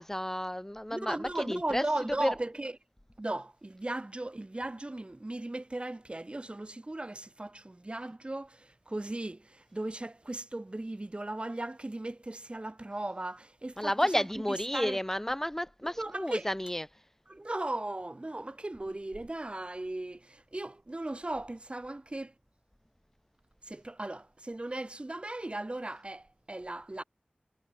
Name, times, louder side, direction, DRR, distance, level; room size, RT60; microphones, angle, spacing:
voice 1, 0.0-1.8 2.2-2.3 13.8-16.9, left 1 dB, 10° left, 1.5 m, -31 dB
voice 2, 0.9-2.8 3.2-14.3 14.7-15.0 15.8-16.5 17.3-22.3 23.6-27.0, right 2 dB, 35° right, 6.4 m, -37 dB
wide cardioid pair, 60°, 3 cm